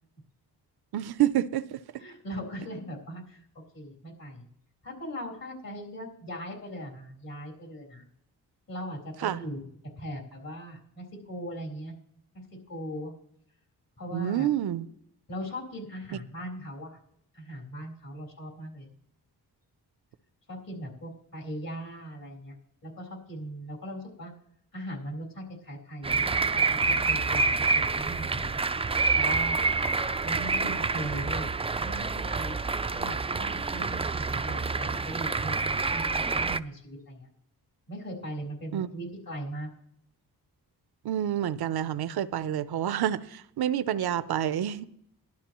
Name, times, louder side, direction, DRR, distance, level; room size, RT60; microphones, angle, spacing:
voice 1, 0.9-2.0 9.2-9.4 14.1-14.9 30.6-30.8 38.7-38.9 41.0-44.9, right 11 dB, 70° right, 0.6 m, -28 dB
voice 2, 2.0-3.4 3.7-4.5 4.8-8.0 8.7-9.6 10.0-11.9 12.3-13.1 14.0-14.5 15.3-17.0 17.3-18.9 20.5-22.5 22.8-24.3 24.7-26.2 26.5-27.5 27.7-28.7 29.1-29.6 30.2-31.5 31.8-32.6 32.9-37.3 37.9-39.7, equal, 55° left, 4.0 m, -39 dB
sound 1, 26.0-36.6, right 4 dB, 15° right, 0.4 m, -27 dB
18.0 x 11.5 x 3.0 m
cardioid pair, 55°, 39 cm